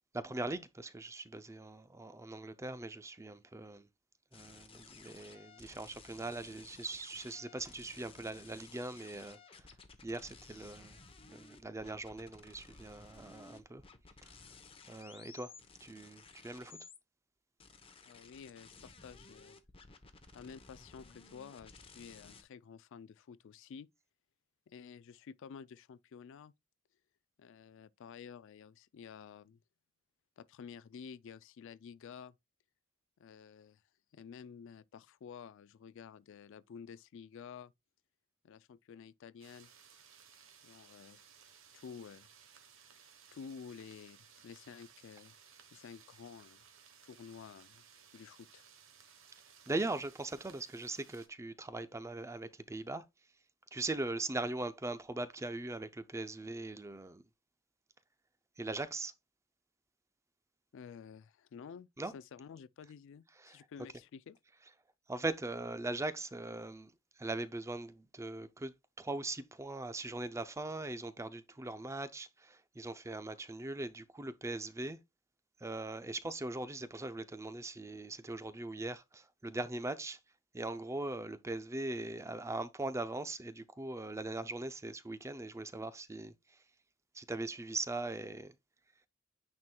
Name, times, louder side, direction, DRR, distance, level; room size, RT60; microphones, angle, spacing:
voice 1, 0.1-3.9 4.3-9.7 10.0-11.0 11.3-13.8 14.9-15.5 15.8-16.8 49.7-53.1 53.7-57.2 58.6-59.1 62.0-62.1 63.4-63.6 65.1-66.9 67.2-75.0 75.6-80.2 80.5-86.6 87.1-88.5, right 2 dB, 15° right, 0.4 m, -40 dB
sound 1, 4.3-17.0 17.6-22.4, left 4 dB, 25° left, 0.8 m, -56 dB
voice 2, 18.0-19.6 20.3-23.9 24.7-26.5 27.4-29.6 30.4-32.3 33.2-33.8 34.1-37.7 38.4-39.7 40.6-41.2 41.7-42.3 42.9-43.0 43.3-44.2 44.4-45.4 45.7-46.6 47.0-47.8 48.1-48.6 60.7-64.4, left 6 dB, 60° left, 0.3 m, -51 dB
sound 2, 39.4-51.3, right 7 dB, 65° right, 1.1 m, -60 dB
9.4 x 4.4 x 2.2 m
head